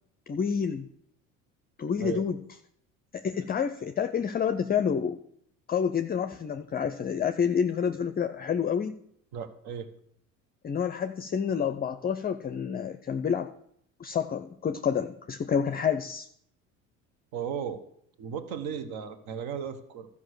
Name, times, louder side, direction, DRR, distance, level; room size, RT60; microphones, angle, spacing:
voice 1, 0.3-0.9 1.8-2.4 3.1-5.2 5.7-9.0 10.6-13.5 14.0-16.3, left 7 dB, 25° left, 10 dB, 0.5 m, -28 dB
voice 2, 9.3-9.9 17.3-17.8 18.2-20.1, right 7 dB, 60° right, 11 dB, 1.3 m, -35 dB
12.5 x 5.4 x 6.5 m, 0.69 s
hypercardioid pair, 70°, 40 cm